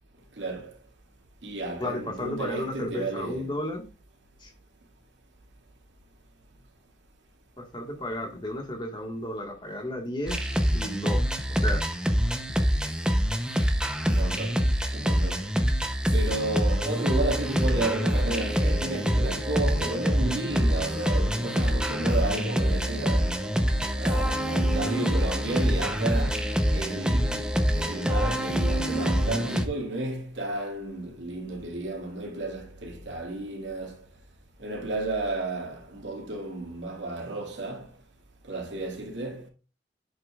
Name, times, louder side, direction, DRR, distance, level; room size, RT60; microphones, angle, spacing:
voice 1, 0.4-0.7 1.4-3.5 14.1-14.6 14.9-15.5 16.1-23.3 24.0-26.4 26.7-34.0 34.6-37.9 38.5-39.5, right 2 dB, 85° right, 2.3 m, -32 dB
voice 2, 1.8-3.8 4.4-4.5 7.6-11.2 11.5-11.8, left 1 dB, 25° left, 1.6 m, -33 dB
sound 1, 10.3-29.6, equal, 5° right, 0.8 m, -25 dB
11.0 x 7.9 x 2.4 m
head